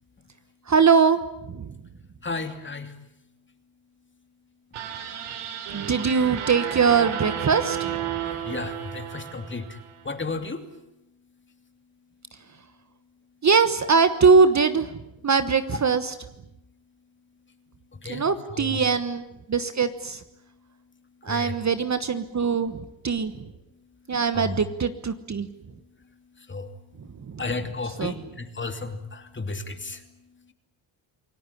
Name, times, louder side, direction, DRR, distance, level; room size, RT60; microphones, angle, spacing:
voice 1, 0.7-1.2 1.5-1.6 5.7-8.0 13.4-14.9 15.2-16.2 18.1-19.2 19.5-20.2 21.2-22.8 23.0-23.3 24.1-25.5 27.3-27.4 28.0-28.1, right 5 dB, 35° right, 11 dB, 1.3 m, -21 dB
voice 2, 2.2-2.9 8.5-9.6 10.0-10.6 18.0-18.2 18.5-18.8 21.3-21.5 24.3-24.6 26.5-26.7 27.4-30.0, left 3 dB, 20° left, 8 dB, 2.8 m, -33 dB
sound 1, 4.7-10.0, right 9 dB, 80° right, 3.4 m, -33 dB
28.0 x 19.0 x 10.0 m, 0.86 s
cardioid pair, 110°, 50 cm